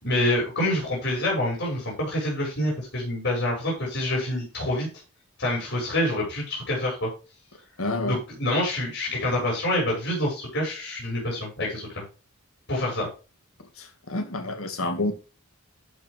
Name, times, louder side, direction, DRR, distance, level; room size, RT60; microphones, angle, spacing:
voice 1, 0.0-4.9 5.4-7.1 8.1-12.0 12.7-13.1, left 1 dB, 55° left, -3 dB, 5.6 m, -26 dB
voice 2, 7.8-8.2 13.8-15.1, left 2 dB, 70° left, 7 dB, 2.0 m, -28 dB
11.5 x 7.0 x 3.4 m, 0.32 s
head